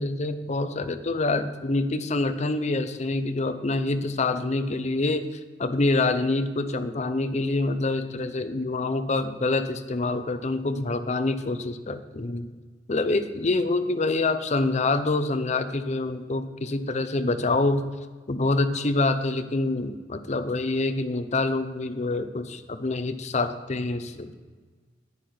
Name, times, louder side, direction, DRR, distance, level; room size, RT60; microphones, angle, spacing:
voice 1, 0.0-12.5 12.9-17.8 18.3-24.3, left 2 dB, 40° left, 10 dB, 0.7 m, -26 dB
9.9 x 9.6 x 4.4 m, 1.4 s
head